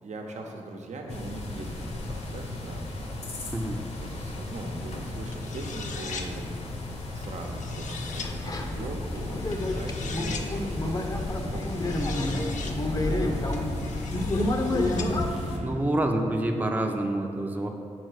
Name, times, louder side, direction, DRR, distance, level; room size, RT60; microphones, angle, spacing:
voice 1, 0.0-2.9 4.0-6.5 7.1-13.4 15.3-15.9, right 2 dB, 70° right, 2 dB, 0.9 m, -40 dB
sound 1, 1.1-15.6, left 2 dB, 60° left, 1.0 m, -36 dB
sound 2, 5.3-6.3 7.2-8.3 9.5-10.5 11.6-12.8 13.5-15.1, left 5 dB, 75° left, 0.6 m, -40 dB
sound 3, 8.2-15.3, left 1 dB, 30° left, 0.7 m, -29 dB
voice 2, 15.6-17.7, right 1 dB, 15° right, 2 dB, 0.6 m, -27 dB
6.4 x 4.1 x 6.4 m, 2.3 s
cardioid pair, 95°, 13 cm